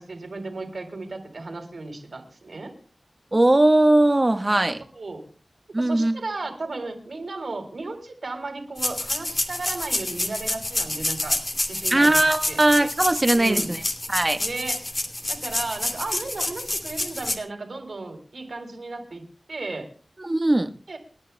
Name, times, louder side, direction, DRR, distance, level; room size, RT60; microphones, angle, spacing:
voice 1, 0.0-2.7 4.9-5.3 5.8-11.4 11.7-12.1 12.5-12.6 13.3-13.7 14.4-14.8 15.3-19.9 20.9-21.0, right 3 dB, 75° right, 4 dB, 3.9 m, -34 dB
voice 2, 3.3-4.8 5.7-6.1 11.9-13.8 14.1-14.4 20.2-20.7, right 1 dB, 35° right, 6 dB, 1.4 m, -19 dB
sound 1, 8.8-17.4, left 1 dB, 40° left, 2.8 m, -28 dB
29.0 x 11.5 x 2.3 m, 0.41 s
wide cardioid pair, 60°, 0 cm